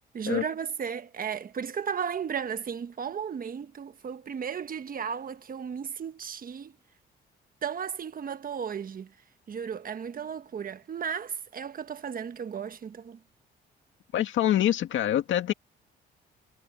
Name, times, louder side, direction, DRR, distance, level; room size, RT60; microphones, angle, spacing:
voice 1, 0.1-6.7 7.6-9.1 9.5-13.2, right 7 dB, 45° right, 1.4 m, -34 dB
voice 2, 14.1-15.5, left 11 dB, 75° left, 2.0 m, -25 dB
cardioid pair, 90°, 20 cm